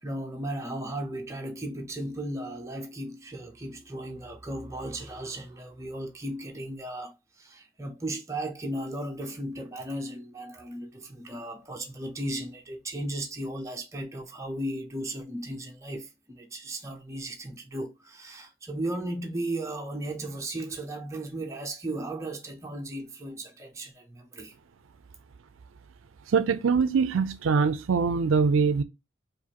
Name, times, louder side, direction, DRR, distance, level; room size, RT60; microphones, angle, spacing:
voice 1, 0.0-24.6, right 1 dB, 15° right, 0.7 m, -36 dB
voice 2, 26.3-28.8, right 5 dB, 80° right, 0.4 m, -23 dB
4.8 x 2.5 x 2.9 m
head